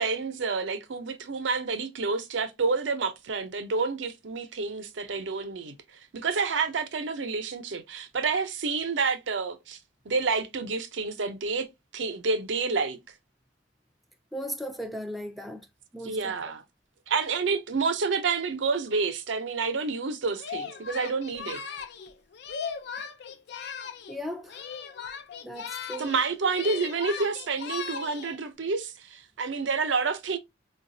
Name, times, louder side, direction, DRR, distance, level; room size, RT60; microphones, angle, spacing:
voice 1, 0.0-5.7 6.1-9.8 10.0-11.7 11.9-13.0 16.0-16.6 17.1-21.6 26.0-30.4, right 4 dB, 80° right, 0.6 m, -29 dB
voice 2, 14.3-15.7 15.9-16.3 24.1-24.6 25.4-26.1, equal, ahead, 0.4 m, -37 dB
Singing, 20.4-24.2 24.5-26.2 26.5-28.4, left 7 dB, 60° left, 0.4 m, -38 dB
3.9 x 2.3 x 2.6 m
head